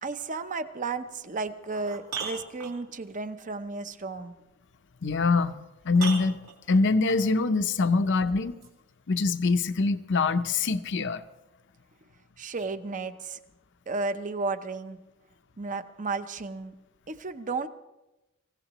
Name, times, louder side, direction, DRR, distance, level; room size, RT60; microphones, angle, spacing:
voice 1, 0.0-4.4 12.4-13.4 13.9-15.0 15.6-16.7 17.1-17.7, right 3 dB, 35° right, 10 dB, 0.7 m, -33 dB
sound 1, 1.0-1.1 1.6-3.1 5.1-5.2 5.9-7.2 8.6-8.7, right 5 dB, 70° right, 3.0 m, -37 dB
voice 2, 5.0-5.6 5.8-6.4 6.7-8.6 9.1-11.2, left 3 dB, 55° left, 11 dB, 0.7 m, -24 dB
25.0 x 16.0 x 3.0 m, 1.0 s
head